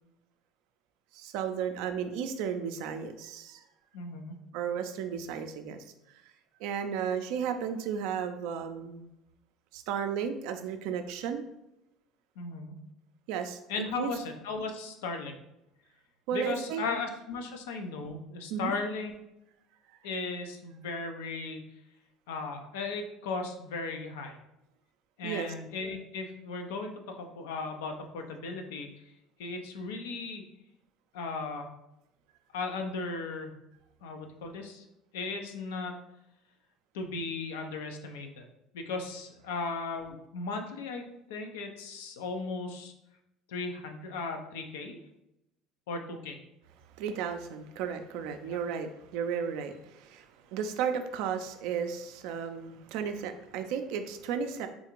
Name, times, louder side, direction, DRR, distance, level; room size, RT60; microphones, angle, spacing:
voice 1, 1.1-3.6 4.5-5.8 6.6-9.0 9.7-11.4 13.3-13.6 14.0-14.1 16.3-16.8 18.5-18.7 25.2-25.5 47.0-54.7, right 7 dB, 75° right, 7 dB, 0.4 m, -34 dB
voice 2, 3.9-4.3 12.4-12.8 13.7-15.3 16.3-19.1 20.0-21.6 22.3-24.4 25.2-28.9 29.4-30.4 31.1-31.7 32.5-33.5 34.0-34.8 35.1-36.0 36.9-38.4 38.7-42.9 43.5-45.0 45.9-46.4, left 3 dB, 85° left, 4 dB, 0.5 m, -36 dB
3.7 x 2.4 x 3.0 m, 0.87 s
supercardioid pair, 85°, 0 cm